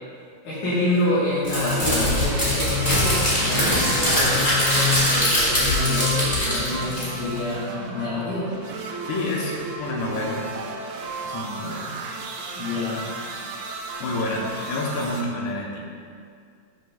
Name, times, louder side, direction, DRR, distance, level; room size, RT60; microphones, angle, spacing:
voice 1, 0.4-8.5 12.6-13.0, left 2 dB, 60° left, -11 dB, 2.7 m, -26 dB
Crumpling crinkling, 1.4-7.4, left 1 dB, 35° left, 0.7 m, -22 dB
sound 1, 1.6-15.2, right 3 dB, 75° right, 2.5 m, -34 dB
voice 2, 9.1-10.5 11.2-11.9 13.7-15.8, left 2 dB, 90° left, -1 dB, 3.0 m, -29 dB
11.5 x 6.4 x 2.4 m, 2.2 s
omnidirectional pair, 4.5 m